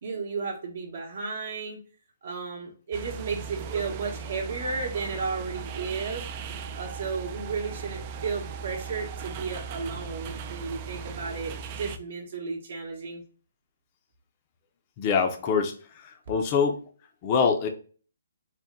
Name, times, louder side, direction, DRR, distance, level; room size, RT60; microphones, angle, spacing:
voice 1, 0.0-1.8 2.2-6.2 6.7-13.2, right 4 dB, 55° right, -1 dB, 0.9 m, -33 dB
sound 1, 2.9-12.0, right 6 dB, 30° right, 0.3 m, -38 dB
voice 2, 15.0-16.8 17.2-17.7, left 6 dB, 25° left, 5 dB, 0.6 m, -25 dB
4.1 x 2.1 x 3.5 m, 0.40 s
hypercardioid pair, 165°, 0 cm